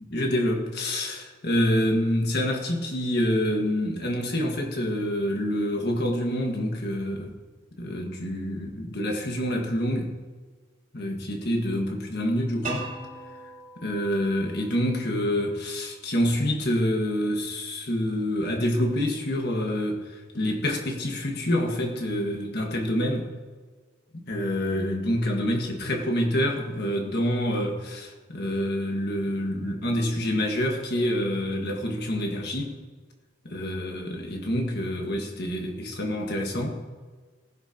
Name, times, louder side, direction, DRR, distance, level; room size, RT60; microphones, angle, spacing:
voice 1, 0.1-7.3 7.8-10.1 10.9-12.8 13.8-23.3 24.1-32.8 33.4-36.8, left 1 dB, 50° left, 2 dB, 1.7 m, -27 dB
sound 1, 12.6-15.5, right 3 dB, 35° right, 3.3 m, -40 dB
19.0 x 10.5 x 2.9 m, 1.4 s
head